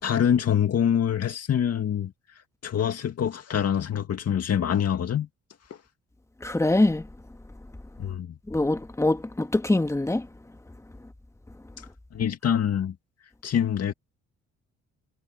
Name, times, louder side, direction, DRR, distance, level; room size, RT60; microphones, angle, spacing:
voice 1, 0.0-2.1 2.6-5.3 8.0-8.3 12.1-12.9 13.4-13.9, left 9 dB, 55° left, 2.1 m, -25 dB
voice 2, 6.4-7.1 8.5-10.3, left 2 dB, 10° left, 1.5 m, -23 dB
cardioid pair, 90°, 30 cm